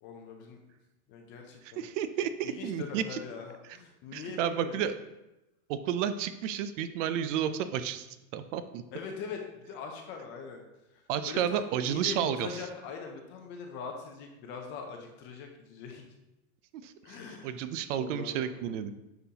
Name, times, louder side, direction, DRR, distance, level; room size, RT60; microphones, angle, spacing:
voice 1, 0.0-0.6 1.1-1.8 2.4-4.8 8.9-10.6 10.9-16.0 17.0-17.6 17.9-18.7, left 5 dB, 25° left, 3 dB, 0.5 m, -42 dB
voice 2, 1.8-3.2 4.1-4.9 5.7-8.1 8.3-8.8 11.1-12.5 16.8-17.2 17.4-18.9, right 9 dB, 55° right, 11 dB, 0.5 m, -31 dB
9.9 x 3.9 x 2.8 m, 0.96 s
supercardioid pair, 160°, 44 cm